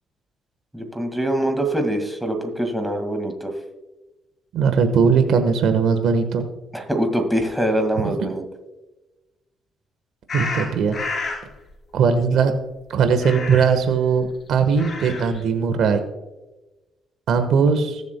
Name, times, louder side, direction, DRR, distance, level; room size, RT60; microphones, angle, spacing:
voice 1, 0.7-3.5 6.7-8.4, right 1 dB, 5° right, 4 dB, 1.9 m, -24 dB
voice 2, 4.5-6.4 8.0-8.1 10.3-11.0 11.9-12.5 12.9-16.0 17.3-18.0, right 6 dB, 75° right, 8 dB, 1.2 m, -19 dB
sound 1, 10.3-11.5 13.2-13.9 14.6-15.4, left 3 dB, 45° left, 3.0 m, -30 dB
20.5 x 7.3 x 2.2 m, 1.1 s
cardioid pair, 90°, 0 cm